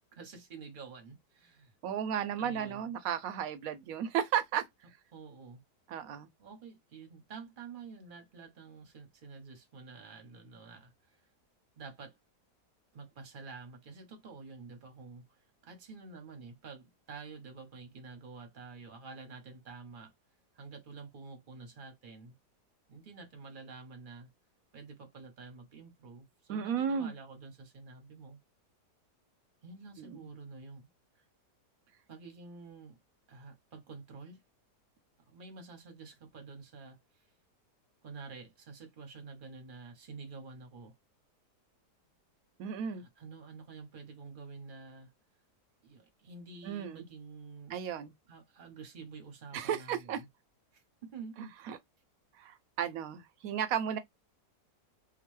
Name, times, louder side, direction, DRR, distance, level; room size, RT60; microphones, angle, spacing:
voice 1, 0.1-1.7 2.4-2.9 5.1-5.6 6.4-11.2 11.8-12.2 12.9-20.1 20.5-22.4 22.9-24.3 24.7-28.4 29.6-30.9 31.2-31.3 32.1-33.0 33.3-34.4 35.3-37.2 38.0-40.9 42.9-45.1 45.8-47.8 48.3-50.3 50.7-51.6, right 4 dB, 45° right, 0.7 m, -49 dB
voice 2, 1.8-4.6 5.9-6.3 26.5-27.1 30.0-30.3 42.6-43.0 46.6-47.1 47.7-48.1 49.5-50.2 51.7-51.8 52.3-54.0, right 8 dB, 70° right, 0.9 m, -34 dB
2.9 x 2.0 x 3.0 m
omnidirectional pair, 1.8 m